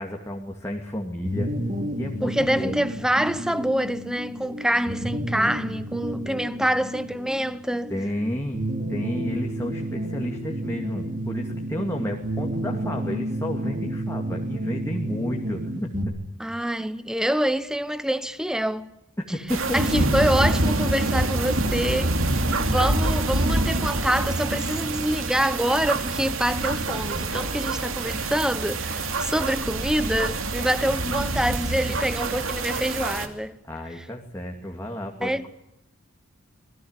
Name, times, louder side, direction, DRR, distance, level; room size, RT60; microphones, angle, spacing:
voice 1, 0.0-1.5 2.0-2.8 7.9-8.6 8.9-15.9 19.2-19.8 33.6-35.5, equal, 15° left, 2.4 m, -31 dB
sound 1, 1.2-16.0, right 1 dB, 40° right, 4.2 m, -31 dB
voice 2, 2.2-7.9 16.4-18.9 19.7-33.5 35.2-35.5, equal, 5° right, 1.0 m, -26 dB
sound 2, 19.5-33.3, right 2 dB, 80° right, 2.7 m, -26 dB
27.0 x 20.5 x 8.1 m
head